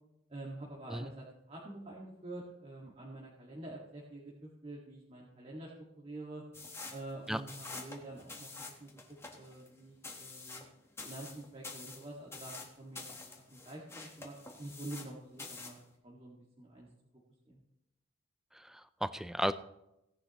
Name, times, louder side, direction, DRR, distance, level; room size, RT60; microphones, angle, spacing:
voice 1, 0.3-5.7 6.0-6.4 6.9-8.5 8.8-8.9 9.3-10.6 11.0-15.8 16.0-16.9 17.5-17.6, right 2 dB, 30° right, -4 dB, 1.9 m, -47 dB
sound 1, 6.5-15.1 15.4-15.8, left 3 dB, 15° left, 1.3 m, -47 dB
voice 2, 18.6-19.5, equal, ahead, 13 dB, 0.3 m, -34 dB
17.5 x 10.5 x 3.1 m, 0.88 s
head